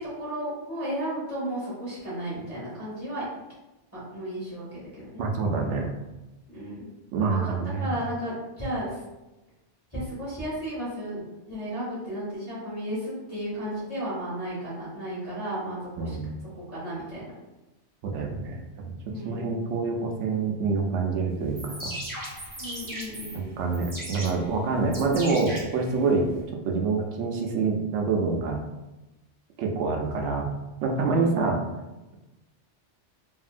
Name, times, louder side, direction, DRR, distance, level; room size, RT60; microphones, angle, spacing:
voice 1, 0.0-3.2 3.9-5.2 6.5-6.9 7.3-9.0 9.9-11.2 11.5-16.2 16.5-17.3 19.1-19.5 22.6-23.8 31.1-31.6, right 1 dB, 10° left, -11 dB, 1.4 m, -34 dB
voice 2, 5.2-5.9 7.1-7.9 16.0-16.2 18.0-18.9 19.2-21.9 23.3-26.3 26.7-28.6 29.6-30.5 30.8-31.6, right 4 dB, 75° right, 1 dB, 0.9 m, -26 dB
sound 1, 21.4-26.4, right 1 dB, 20° right, 0.6 m, -38 dB
2.8 x 2.6 x 2.4 m, 1.0 s
omnidirectional pair, 1.2 m